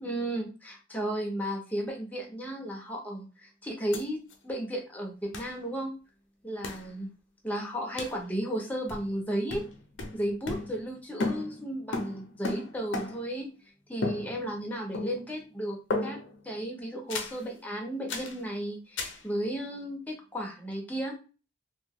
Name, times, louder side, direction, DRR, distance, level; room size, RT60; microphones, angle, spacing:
voice 1, 0.0-5.9 6.4-7.1 7.4-9.6 10.1-13.5 13.9-16.2 16.4-21.2, right 1 dB, 10° left, 0 dB, 0.6 m, -34 dB
sound 1, 3.9-4.0 4.3-4.4 5.3-5.6 6.6-6.9 8.0-8.2 8.9-9.2 9.5-10.9 11.2-13.4 14.0-14.7 14.9-15.4 15.9-16.4 17.1-17.4 18.1-18.4 19.0-19.2, left 2 dB, 90° left, 0.6 m, -35 dB
2.6 x 2.2 x 3.4 m, 0.33 s
head